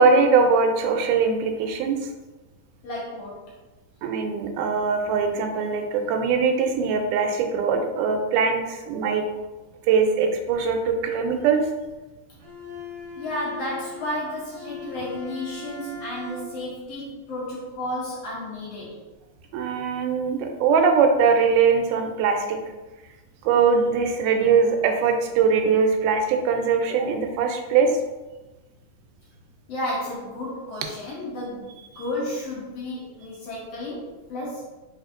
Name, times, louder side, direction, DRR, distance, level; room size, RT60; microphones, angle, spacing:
voice 1, 0.0-2.0 4.0-9.2 9.9-11.6 19.5-22.6 23.4-27.9, right 5 dB, 85° right, 4 dB, 2.1 m, -21 dB
voice 2, 2.8-3.6 13.2-19.0 29.7-34.6, left 1 dB, 70° left, -6 dB, 1.6 m, -32 dB
Bowed string instrument, 12.4-16.8, left 3 dB, 70° right, 1.9 m, -39 dB
4.4 x 3.4 x 2.5 m, 1.1 s
omnidirectional pair, 3.6 m